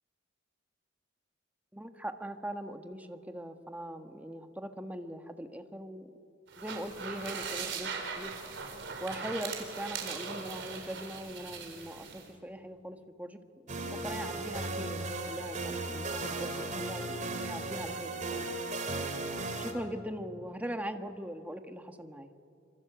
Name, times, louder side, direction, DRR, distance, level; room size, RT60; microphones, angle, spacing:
voice 1, 1.7-6.1 6.6-8.3 9.0-13.4 13.6-18.5 19.6-22.3, equal, 10° right, 7 dB, 1.4 m, -41 dB
sound 1, 6.5-12.3, right 5 dB, 60° right, 4.2 m, -40 dB
sound 2, 13.7-19.7, right 2 dB, 40° right, 2.9 m, -36 dB
25.5 x 25.5 x 8.0 m, 2.5 s
head